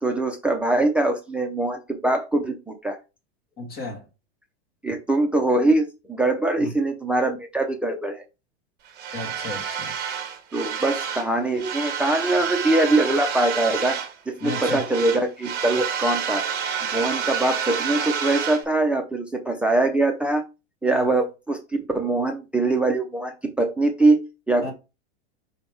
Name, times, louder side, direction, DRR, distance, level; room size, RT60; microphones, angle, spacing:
voice 1, 0.0-3.0 4.8-8.2 10.5-14.0 14.3-16.4 16.9-20.4 20.8-21.6 21.9-24.2 24.5-24.7, right 2 dB, 5° right, 0.5 m, -23 dB
voice 2, 3.6-4.1 6.6-6.7 9.1-9.9 14.4-14.9 20.8-21.1 24.6-24.7, left 2 dB, 30° left, 2.2 m, -34 dB
sound 1, 9.0-11.3 11.6-14.1 14.4-18.6, right 7 dB, 30° right, 1.5 m, -29 dB
5.3 x 3.4 x 5.4 m
supercardioid pair, 140°, 33 cm